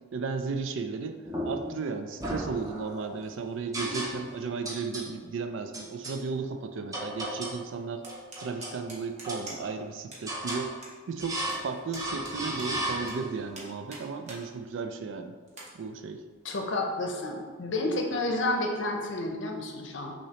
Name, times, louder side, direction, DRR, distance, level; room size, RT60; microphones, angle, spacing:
voice 1, 0.1-1.2 1.4-8.0 8.4-10.7 11.1-15.3 15.8-16.2, right 4 dB, 65° right, 7 dB, 0.4 m, -34 dB
sound 1, 1.3-1.8 2.2-3.1 3.7-4.4 4.6-5.1 5.7-6.2 6.9-7.6 8.0-8.8 9.2-9.9 10.3-10.7 11.2-11.7 11.9-13.4, right 1 dB, 15° right, 0.6 m, -35 dB
sound 2, 8.0-9.8 10.1-10.2 10.5-10.9 11.2-13.1 13.5-14.4 14.9-15.0 15.5-15.7, right 2 dB, 35° right, 1.0 m, -45 dB
voice 2, 16.4-20.1, left 2 dB, 65° left, 2 dB, 0.6 m, -30 dB
6.2 x 2.8 x 2.9 m, 1.5 s
head